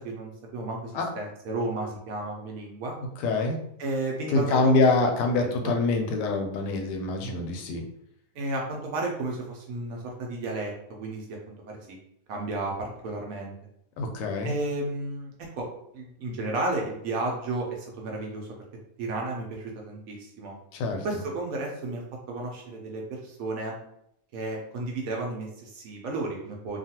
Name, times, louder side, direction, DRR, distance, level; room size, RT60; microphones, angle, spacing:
voice 1, 0.0-2.9 3.8-5.0 5.4-5.7 8.3-12.0 12.3-13.5 14.4-15.3 15.6-15.7 15.9-18.6 19.0-20.5 21.0-22.0 22.3-23.8 24.3-26.8, right 2 dB, 65° right, -1 dB, 1.0 m, -33 dB
voice 2, 3.2-3.6 4.3-7.8 14.0-14.5 20.7-21.1, left 3 dB, 90° left, 4 dB, 1.2 m, -25 dB
2.9 x 2.4 x 2.8 m, 0.74 s
omnidirectional pair, 1.8 m